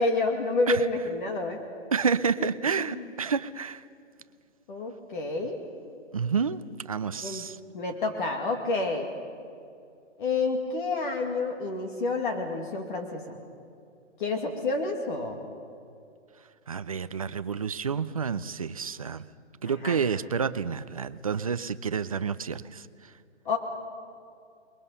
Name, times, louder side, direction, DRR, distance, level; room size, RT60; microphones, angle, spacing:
voice 1, 0.0-1.6 2.4-2.5 2.8-3.1 4.7-5.6 7.2-7.5 7.7-9.1 10.2-13.4 14.2-15.4 19.6-20.0 23.5-23.6, left 3 dB, 45° left, 3 dB, 2.3 m, -29 dB
voice 2, 1.9-3.8 6.1-6.6 6.9-7.6 16.7-19.2 19.6-22.9, right 6 dB, 30° right, 13 dB, 0.5 m, -29 dB
29.0 x 22.0 x 5.6 m, 2.4 s
hypercardioid pair, 160°, 36 cm